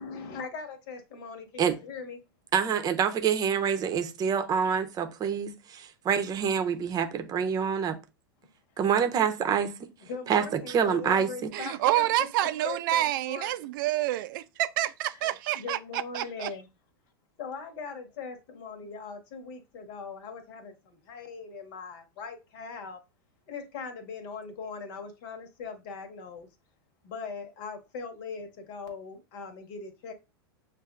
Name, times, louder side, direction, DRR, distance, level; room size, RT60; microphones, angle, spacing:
voice 1, 0.0-2.2 10.0-12.3 12.6-13.6 15.5-16.7 17.4-23.0 23.5-26.5 27.0-30.1, left 5 dB, 60° left, 1.3 m, -40 dB
voice 2, 2.5-8.0 8.8-9.7 10.3-11.5, right 7 dB, 30° right, 0.7 m, -26 dB
voice 3, 11.5-16.5, right 14 dB, 60° right, 0.4 m, -28 dB
7.3 x 2.6 x 2.4 m
hypercardioid pair, 100°, 12 cm